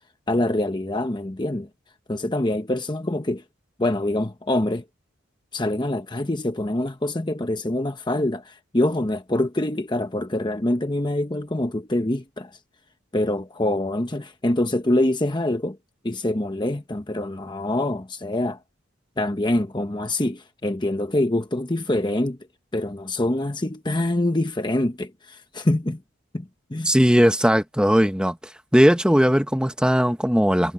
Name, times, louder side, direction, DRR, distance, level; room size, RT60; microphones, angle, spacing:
voice 1, 0.3-1.7 2.1-3.4 3.8-4.8 5.5-12.5 13.1-15.8 16.0-18.6 19.2-22.4 22.7-26.0 26.3-26.9, left 1 dB, 20° left, 0.9 m, -25 dB
voice 2, 26.8-28.4 28.7-30.7, equal, 5° right, 1.3 m, -18 dB
head